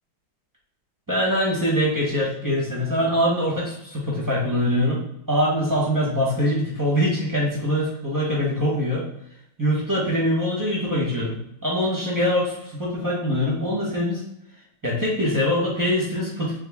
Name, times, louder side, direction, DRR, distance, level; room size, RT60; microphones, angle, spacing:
voice 1, 1.1-5.0 5.3-9.0 9.6-11.4 11.6-14.2 14.8-16.6, equal, 10° right, -6 dB, 1.2 m, -23 dB
3.6 x 3.5 x 3.6 m, 0.77 s
omnidirectional pair, 2.2 m